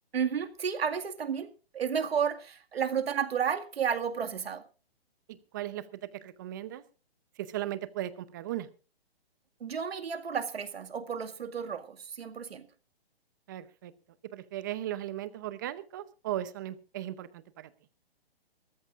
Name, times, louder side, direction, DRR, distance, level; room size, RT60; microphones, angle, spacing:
voice 1, 0.1-1.5 1.7-4.6 9.6-12.7, right 7 dB, 75° right, 8 dB, 2.1 m, -32 dB
voice 2, 5.3-5.8 6.2-6.8 7.4-8.7 13.5-13.9 14.3-17.3 17.6-17.7, right 13 dB, 20° right, 16 dB, 0.7 m, -37 dB
23.0 x 14.0 x 2.5 m, 0.34 s
hypercardioid pair, 165°, 31 cm